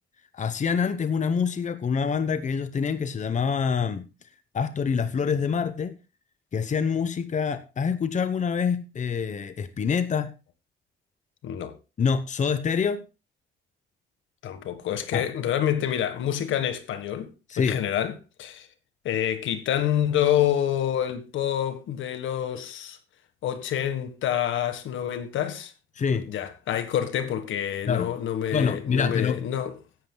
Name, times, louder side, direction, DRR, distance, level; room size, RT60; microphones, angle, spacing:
voice 1, 0.3-4.1 4.5-5.9 6.5-10.3 12.0-13.0 15.1-15.3 17.5-17.8 26.0-26.3 27.9-28.1 28.5-29.4, left 6 dB, 35° left, 1.0 m, -26 dB
voice 2, 11.4-11.7 14.4-18.7 19.0-23.0 23.4-25.7 26.3-29.7, left 10 dB, 75° left, 1.6 m, -27 dB
15.5 x 11.5 x 2.3 m
cardioid pair, 90°, 20 cm